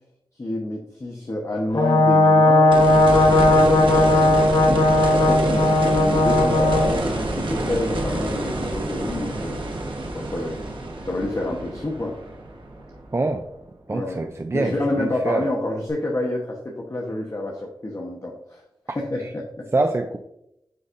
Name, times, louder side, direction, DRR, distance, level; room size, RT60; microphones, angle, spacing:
voice 1, 0.4-2.7 3.5-9.6 10.1-10.6 11.1-12.2 13.9-14.2 14.5-18.6 18.9-19.7, left 2 dB, 40° left, -1 dB, 1.0 m, -28 dB
Brass instrument, 1.7-6.9, left 1 dB, 65° left, 1.2 m, -17 dB
sound 1, 2.7-13.6 15.9-16.0, right 1 dB, 75° right, 1.2 m, -28 dB
voice 2, 13.1-13.4 13.9-15.5 19.7-20.2, right 2 dB, 30° right, 6 dB, 0.4 m, -25 dB
9.3 x 4.1 x 2.6 m, 0.82 s
wide cardioid pair, 85°, 9 cm